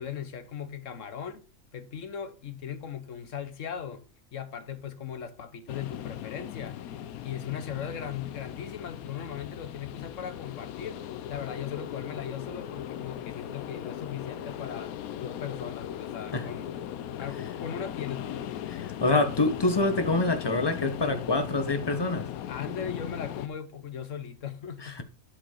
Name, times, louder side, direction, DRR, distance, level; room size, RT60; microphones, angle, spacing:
voice 1, 0.0-1.4 1.7-4.0 4.3-6.8 7.2-16.7 17.2-18.5 22.5-24.9, left 8 dB, 65° left, 1.3 m, -38 dB
sound 1, 5.7-23.5, left 10 dB, 80° left, 1.1 m, -38 dB
voice 2, 18.7-22.3 24.8-25.0, left 2 dB, 20° left, 1.0 m, -26 dB
11.0 x 4.8 x 4.5 m
omnidirectional pair, 1.5 m